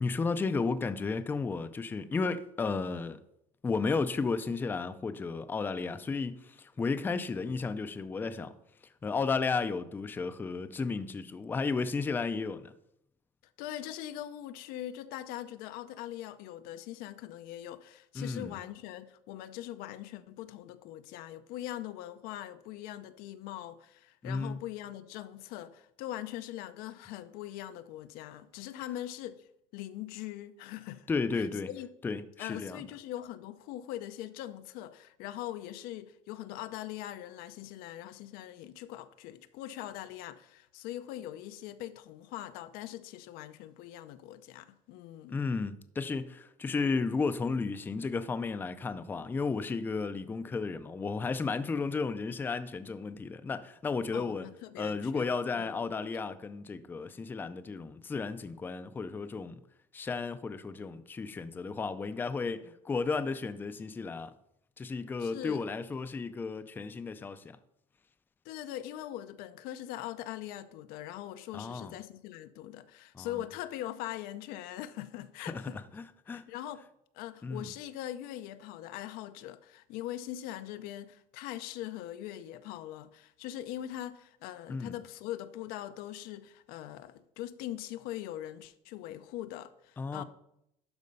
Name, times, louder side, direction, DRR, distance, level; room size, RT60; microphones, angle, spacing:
voice 1, 0.0-3.2 3.6-8.5 9.0-12.7 18.2-18.6 24.2-24.6 31.1-31.7 32.0-32.8 45.3-54.5 54.8-59.6 59.9-64.3 64.8-67.6 71.5-71.9 73.1-73.3 75.4-76.5 77.4-77.7 84.7-84.9 90.0-90.2, left 4 dB, 15° left, 0.4 m, -33 dB
voice 2, 13.6-31.1 31.4-31.9 32.4-45.4 54.1-55.8 65.2-65.7 68.4-75.8 76.3-76.8 77.1-90.2, left 13 dB, 85° left, 0.6 m, -42 dB
12.0 x 4.2 x 5.4 m
cardioid pair, 160°, 15 cm